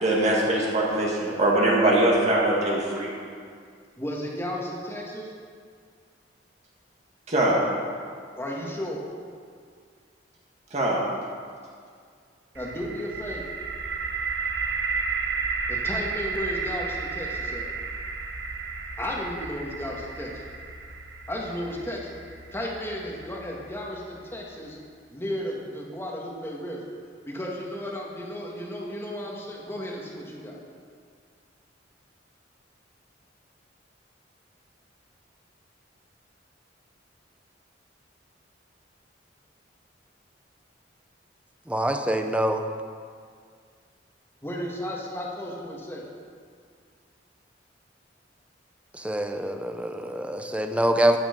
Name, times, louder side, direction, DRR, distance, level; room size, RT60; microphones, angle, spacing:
voice 1, 0.0-3.1 7.3-7.6 10.7-11.0, right 1 dB, 40° right, -4 dB, 2.1 m, -22 dB
voice 2, 4.0-5.3 8.4-9.0 12.5-13.4 15.7-17.7 19.0-20.4 21.3-22.2 22.5-24.8 25.1-26.8 27.3-30.6 44.4-46.1, equal, 15° left, -2 dB, 1.9 m, -34 dB
sound 1, 12.5-24.4, right 4 dB, 70° right, 1.0 m, -33 dB
voice 3, 41.7-42.6 49.0-51.2, right 1 dB, 5° right, 5 dB, 0.7 m, -25 dB
14.0 x 9.3 x 5.3 m, 2.1 s
head